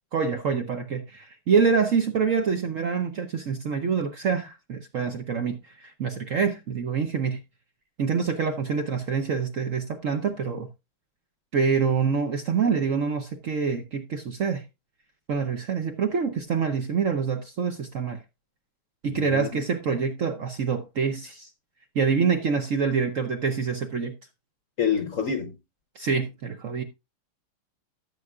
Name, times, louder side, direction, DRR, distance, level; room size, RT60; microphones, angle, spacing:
voice 1, 0.1-7.4 8.0-10.7 11.5-14.6 15.3-18.2 19.0-21.5 21.9-24.1 25.9-26.8, right 5 dB, 60° right, 0.8 m, -26 dB
voice 2, 19.1-19.6 24.8-25.5, left 7 dB, 55° left, 1.0 m, -27 dB
13.5 x 7.6 x 2.4 m
omnidirectional pair, 2.3 m